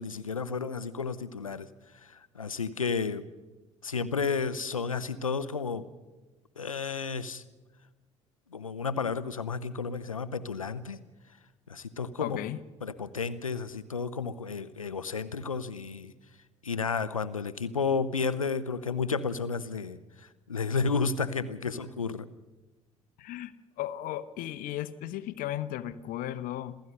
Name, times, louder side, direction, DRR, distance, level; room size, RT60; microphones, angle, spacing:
voice 1, 0.0-1.7 2.0-3.2 3.8-5.9 6.6-7.4 8.5-11.0 11.7-12.4 12.8-16.1 16.6-22.3, left 5 dB, 85° left, 14 dB, 0.8 m, -32 dB
voice 2, 12.2-12.6 21.7-21.9 23.2-23.5 23.8-26.8, left 13 dB, 55° left, 14 dB, 1.1 m, -35 dB
27.5 x 16.0 x 6.7 m, 1.2 s
figure-of-eight pair, 55°, 17 cm